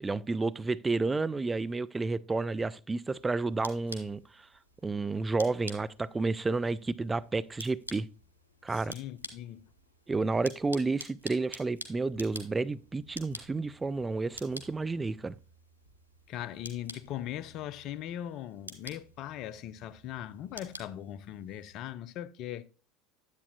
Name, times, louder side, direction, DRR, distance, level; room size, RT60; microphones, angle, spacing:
voice 1, 0.0-4.5 4.8-8.1 8.6-9.0 10.1-15.3, right 3 dB, 15° right, 0.3 m, -31 dB
sound 1, 3.0-21.8, equal, 85° left, 1.0 m, -49 dB
voice 2, 8.7-9.6 16.3-22.6, left 11 dB, 45° left, 0.5 m, -40 dB
9.6 x 8.2 x 2.3 m
figure-of-eight pair, 70°, 0 cm